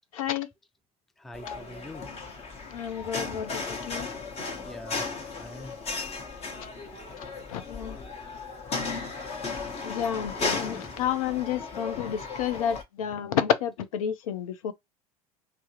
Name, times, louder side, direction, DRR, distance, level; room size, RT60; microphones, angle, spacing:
voice 1, 0.1-0.5 2.6-4.1 7.5-8.0 9.8-14.7, left 9 dB, 70° left, 0.6 m, -30 dB
voice 2, 1.2-2.1 3.0-3.5 4.6-5.8 9.7-9.9 10.5-11.0, left 1 dB, ahead, 0.3 m, -45 dB
sound 1, 1.3-12.8, left 4 dB, 35° left, 1.1 m, -35 dB
3.3 x 2.0 x 2.8 m
figure-of-eight pair, 70°, 19 cm